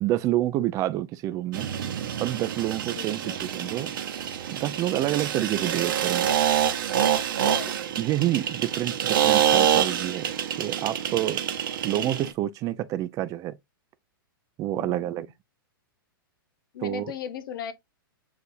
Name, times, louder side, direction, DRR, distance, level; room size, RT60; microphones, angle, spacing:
voice 1, 0.0-1.7 2.2-3.9 4.5-6.3 8.0-10.3 10.6-11.4 11.8-13.6 14.6-15.3 16.8-17.1, right 14 dB, 30° right, 0.4 m, -28 dB
sound 1, 1.5-12.3, right 10 dB, 65° right, 0.7 m, -26 dB
voice 2, 2.9-3.4 5.3-5.5 7.4-7.7 14.7-15.3 16.7-17.7, left 8 dB, 65° left, 0.8 m, -37 dB
6.6 x 2.5 x 2.5 m
hypercardioid pair, 120°, 12 cm